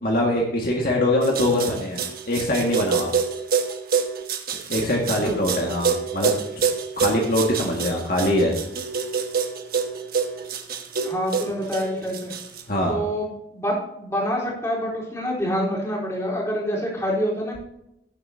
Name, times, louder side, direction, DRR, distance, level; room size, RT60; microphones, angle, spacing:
voice 1, 0.0-3.1 4.7-6.3 7.0-8.6 12.7-13.0, left 1 dB, 55° left, -1 dB, 2.0 m, -23 dB
sound 1, 1.2-12.6, right 6 dB, 55° right, 1.3 m, -26 dB
voice 2, 11.0-12.3 12.9-17.6, equal, 15° left, -5 dB, 4.0 m, -26 dB
18.5 x 7.9 x 2.8 m, 0.82 s
head